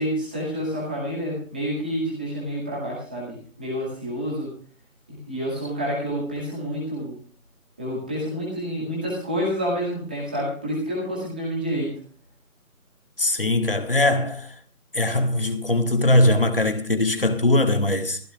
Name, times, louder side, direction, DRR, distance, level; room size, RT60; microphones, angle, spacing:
voice 1, 0.0-4.6 5.1-7.2 7.8-12.0, equal, 5° right, 2.1 m, -28 dB
voice 2, 13.2-14.5 14.9-18.2, left 1 dB, 40° left, 1.6 m, -21 dB
19.0 x 15.5 x 2.4 m
figure-of-eight pair, 170°, 44 cm